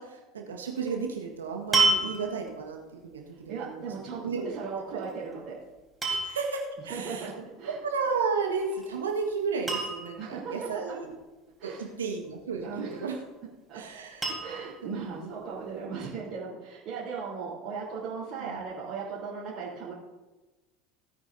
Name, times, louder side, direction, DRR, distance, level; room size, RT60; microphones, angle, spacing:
voice 1, 0.0-3.9 4.2-4.6 4.9-5.0 6.1-7.3 7.8-11.1 11.6-13.1 13.7-14.3 14.8-14.9 15.2-15.3 15.8-16.0 18.5-18.6, right 5 dB, 80° right, 1 dB, 1.5 m, -33 dB
sound 1, 0.8-1.0 1.7-2.6 5.0-5.4 6.0-6.5 8.5-8.9 9.2-9.3 9.7-10.3 12.6-13.2 14.2-14.8 15.6-15.7, right 3 dB, 15° right, 3.8 m, -29 dB
voice 2, 3.5-5.6 6.9-7.3 7.6-7.8 10.2-10.5 10.9-11.0 11.6-11.9 12.6-13.1 13.7-13.8 14.3-19.9, right 5 dB, 45° right, -8 dB, 3.4 m, -37 dB
17.5 x 8.9 x 2.7 m, 1.1 s
figure-of-eight pair, 75°, 0 cm